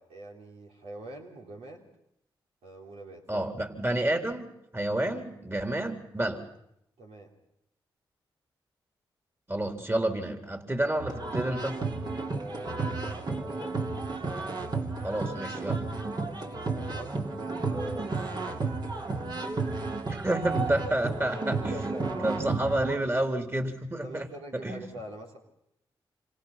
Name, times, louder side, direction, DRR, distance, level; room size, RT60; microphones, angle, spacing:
voice 1, 0.0-1.9 2.6-3.4 7.0-7.3 12.3-13.8 16.2-18.5 21.7-22.3 24.0-25.4, right 1 dB, 85° right, 0 dB, 3.6 m, -44 dB
voice 2, 3.3-6.4 9.5-11.7 15.0-15.8 20.1-21.9 22.2-24.3 24.6-24.8, right 1 dB, 25° right, 5 dB, 3.9 m, -30 dB
sound 1, 11.0-23.0, right 3 dB, 45° right, 3.2 m, -32 dB
27.0 x 26.5 x 6.0 m, 0.78 s
supercardioid pair, 45°, 10 cm